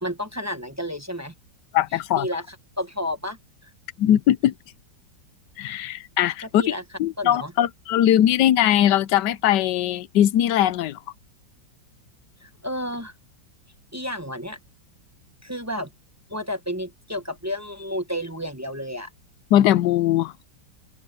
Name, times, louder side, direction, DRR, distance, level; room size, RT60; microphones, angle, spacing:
voice 1, 0.0-1.3 1.9-3.4 3.6-3.7 6.4-6.8 7.2-7.5 12.4-13.1 13.9-14.6 15.4-15.9 16.3-19.1, left 1 dB, 10° right, 0.9 m, -31 dB
voice 2, 1.7-2.3 4.0-4.5 5.6-6.7 7.0-11.0 19.5-20.3, left 11 dB, 70° left, 1.3 m, -20 dB
omnidirectional pair, 2.0 m